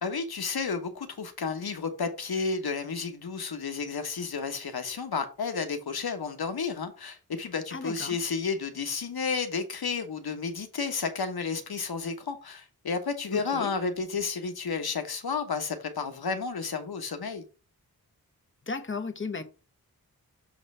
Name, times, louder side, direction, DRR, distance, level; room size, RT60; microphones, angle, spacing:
voice 1, 0.0-17.5, left 5 dB, 80° left, 1.2 m, -32 dB
voice 2, 7.7-8.2 13.3-13.7 18.7-19.4, left 4 dB, 30° left, 1.0 m, -35 dB
7.0 x 3.1 x 5.5 m
wide cardioid pair, 70°, 37 cm